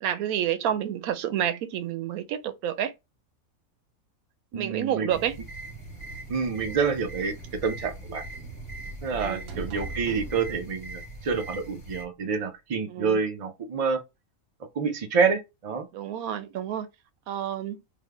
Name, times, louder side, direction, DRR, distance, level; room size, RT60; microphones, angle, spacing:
voice 1, 0.0-2.9 4.5-5.4 9.1-9.6 12.9-13.2 15.9-16.9 17.3-17.8, right 10 dB, 90° right, 1.1 m, -29 dB
voice 2, 4.5-5.1 6.3-7.3 7.6-8.2 9.0-14.0 14.8-15.9, right 5 dB, 50° right, 0.4 m, -27 dB
sound 1, 5.1-12.0, right 2 dB, 30° left, 0.8 m, -42 dB
sound 2, 5.4-12.1, right 2 dB, 65° right, 0.9 m, -43 dB
3.4 x 2.2 x 3.4 m
omnidirectional pair, 1.5 m